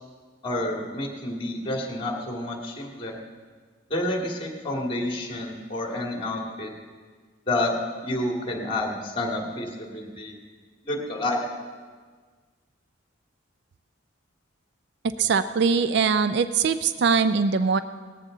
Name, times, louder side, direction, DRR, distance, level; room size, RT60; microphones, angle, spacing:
voice 1, 0.4-3.2 3.9-6.7 7.5-7.7 8.0-10.3 10.8-11.4, left 1 dB, 25° left, 0 dB, 2.1 m, -29 dB
voice 2, 15.2-17.8, right 5 dB, 55° right, 12 dB, 0.4 m, -22 dB
18.5 x 13.5 x 3.9 m, 1.5 s
head